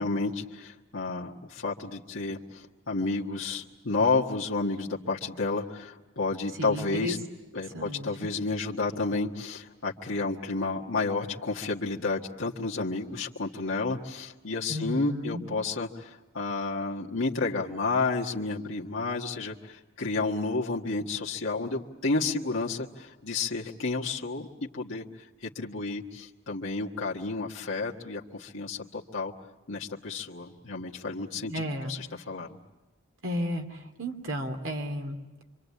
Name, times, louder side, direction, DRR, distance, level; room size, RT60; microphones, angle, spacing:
voice 1, 0.0-7.2 7.5-24.5 24.7-29.3 29.7-32.5, left 3 dB, 75° left, -3 dB, 1.6 m, -31 dB
voice 2, 6.6-7.2 7.7-8.3 14.7-15.4 31.3-31.9 33.2-35.2, equal, 75° right, 4 dB, 2.7 m, -33 dB
26.0 x 25.5 x 8.4 m, 1.1 s
head